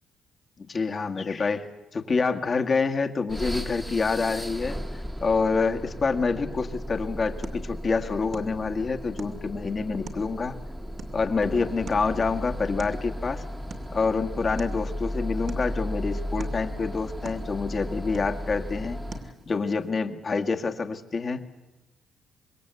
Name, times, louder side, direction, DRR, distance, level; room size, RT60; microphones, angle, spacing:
voice 1, 0.6-4.8 5.2-10.6 11.1-13.4 13.9-19.0 19.5-21.4, left 4 dB, 40° left, 7 dB, 1.8 m, -27 dB
sound 1, 3.3-19.4, equal, 5° right, 1.6 m, -35 dB
sound 2, 6.5-19.9, right 4 dB, 50° right, 2.5 m, -47 dB
25.5 x 22.0 x 8.2 m, 1.1 s
cardioid pair, 90°, 0 cm